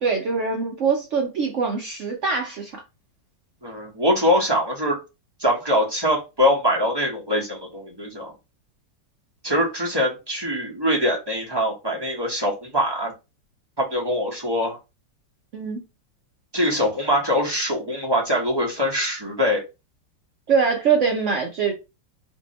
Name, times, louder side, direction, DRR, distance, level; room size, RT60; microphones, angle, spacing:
voice 1, 0.0-2.8 15.5-15.8 20.5-21.7, right 5 dB, 65° right, 0.7 m, -23 dB
voice 2, 3.6-5.0 5.4-8.3 9.4-13.1 13.8-14.8 16.5-19.6, equal, 25° right, 0.5 m, -23 dB
2.7 x 2.7 x 4.0 m
omnidirectional pair, 1.9 m